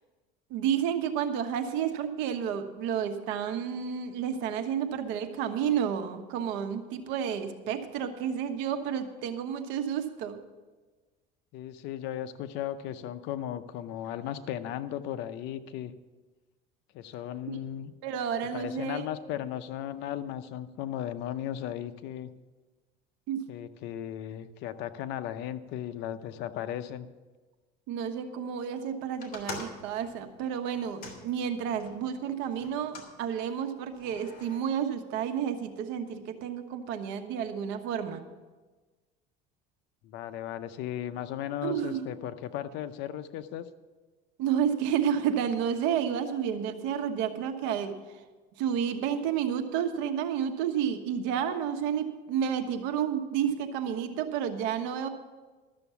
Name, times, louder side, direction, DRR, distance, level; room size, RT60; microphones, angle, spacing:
voice 1, 0.5-10.4 17.5-17.6 18.0-19.1 23.3-23.5 27.9-38.2 41.6-42.1 44.4-48.0 48.6-55.1, right 8 dB, 75° right, 7 dB, 1.2 m, -31 dB
voice 2, 11.5-15.9 16.9-17.9 18.5-22.3 23.5-27.1 40.0-43.7, left 11 dB, 65° left, 11 dB, 0.7 m, -36 dB
sound 1, 29.2-32.0 32.6-33.1 33.9-34.6, left 3 dB, 50° left, 2.7 m, -44 dB
13.0 x 7.0 x 7.0 m, 1.3 s
cardioid pair, 135°, 19 cm